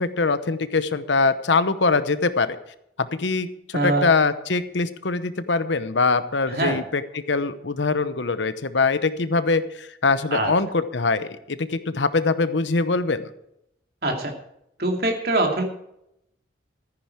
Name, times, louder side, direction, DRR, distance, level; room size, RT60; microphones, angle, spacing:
voice 1, 0.0-2.6 3.0-13.3, left 4 dB, 75° left, 13 dB, 0.9 m, -23 dB
voice 2, 3.7-4.1 6.5-6.8 10.3-10.5 14.0-14.3 14.8-15.6, right 2 dB, 55° right, 2 dB, 2.6 m, -23 dB
14.0 x 10.0 x 4.7 m, 0.78 s
head